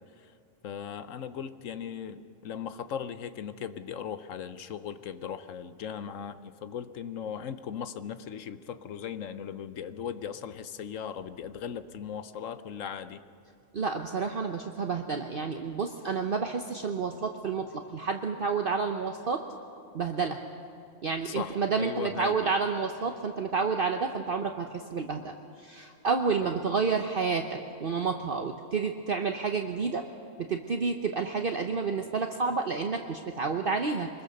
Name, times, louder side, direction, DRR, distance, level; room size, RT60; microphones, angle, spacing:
voice 1, 0.6-13.2 21.2-22.5 26.4-26.6, left 8 dB, 75° left, 12 dB, 1.2 m, -38 dB
voice 2, 13.7-19.4 19.9-20.4 21.0-25.3 25.6-30.0 30.4-34.1, right 5 dB, 45° right, 4 dB, 1.0 m, -30 dB
24.5 x 21.0 x 6.6 m, 2.5 s
omnidirectional pair, 1.3 m